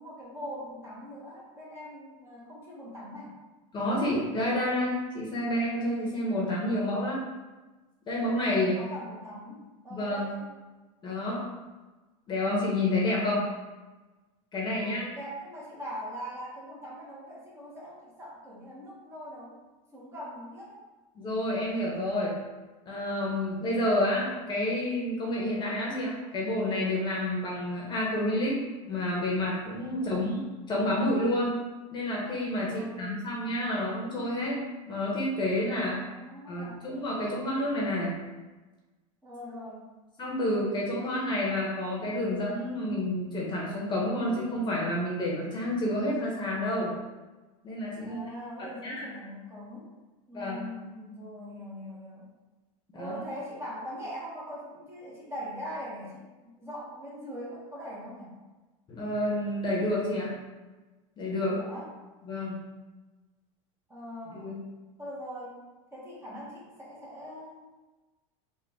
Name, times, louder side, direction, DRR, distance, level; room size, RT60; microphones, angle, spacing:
voice 1, 0.0-3.4 8.7-10.5 14.7-19.6 19.9-20.8 29.9-30.4 32.6-33.3 35.9-36.8 39.2-39.9 48.0-49.9 50.3-52.3 52.9-56.2 56.6-58.4 61.4-61.9 63.9-64.5 65.0-65.6 65.9-67.8, equal, 15° right, -6 dB, 1.2 m, -42 dB
voice 2, 3.7-7.2 8.0-8.8 9.9-10.3 11.0-11.4 12.3-13.5 14.5-15.0 21.1-22.4 22.8-28.6 28.8-31.6 31.9-34.6 34.9-36.0 36.5-38.2 40.2-46.9 47.6-48.2 48.8-49.0 50.3-50.6 52.9-53.2 58.9-60.3 61.2-61.6 62.3-62.6 64.3-64.6, left 1 dB, 25° left, -4 dB, 1.0 m, -29 dB
3.8 x 2.5 x 3.6 m, 1.2 s
supercardioid pair, 120°, 17 cm